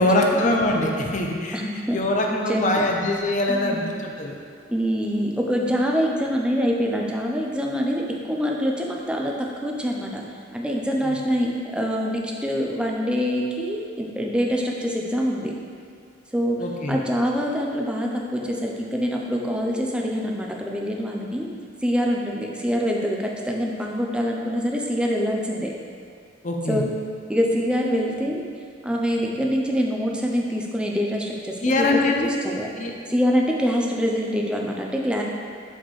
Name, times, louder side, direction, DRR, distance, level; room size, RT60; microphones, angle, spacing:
voice 1, 0.0-1.6 1.9-4.4 11.0-11.2 16.6-17.0 26.4-26.8 31.6-32.3 32.8-32.9, left 2 dB, 40° left, 1 dB, 0.6 m, -23 dB
voice 2, 1.5-2.0 2.3-2.8 3.5-3.8 4.7-10.2 10.5-15.5 16.3-16.6 16.9-21.5 21.8-25.7 26.7-26.9 27.3-28.4 28.8-31.9 32.2-32.7 33.1-35.2, equal, 5° right, -1 dB, 0.5 m, -25 dB
7.8 x 4.3 x 3.1 m, 2.3 s
head